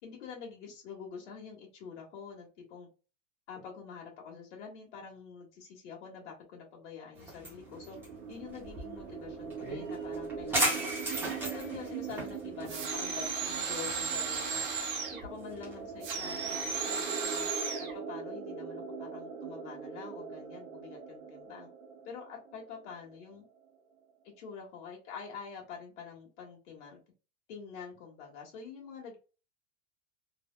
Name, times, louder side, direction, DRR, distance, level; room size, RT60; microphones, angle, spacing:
voice 1, 0.0-2.9 3.5-8.0 8.3-10.9 11.3-14.6 15.1-17.5 17.8-21.7 22.0-23.4 24.2-27.0 27.5-29.2, left 6 dB, 70° left, -1 dB, 1.4 m, -46 dB
sound 1, 7.2-16.8, right 1 dB, 5° right, 0.6 m, -38 dB
sound 2, 7.5-23.2, right 6 dB, 80° right, 0.9 m, -42 dB
sound 3, 12.7-15.3 16.0-17.9, right 5 dB, 45° right, 1.0 m, -35 dB
3.2 x 2.3 x 2.2 m, 0.32 s
supercardioid pair, 170°, 36 cm